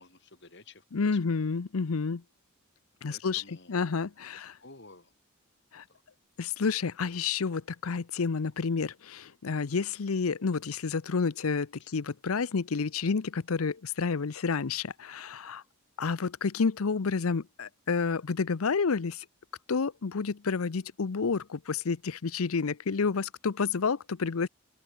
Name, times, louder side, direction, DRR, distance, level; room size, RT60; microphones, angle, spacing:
voice 1, 0.0-0.8 1.1-1.2 3.1-3.8 4.6-5.1 5.9-6.0 13.0-13.1, left 3 dB, 55° left, 4.8 m, -52 dB
voice 2, 0.9-2.2 3.0-4.6 5.7-5.8 6.4-15.6 16.0-19.2 19.7-24.5, left 5 dB, 85° left, 0.7 m, -30 dB
open air
head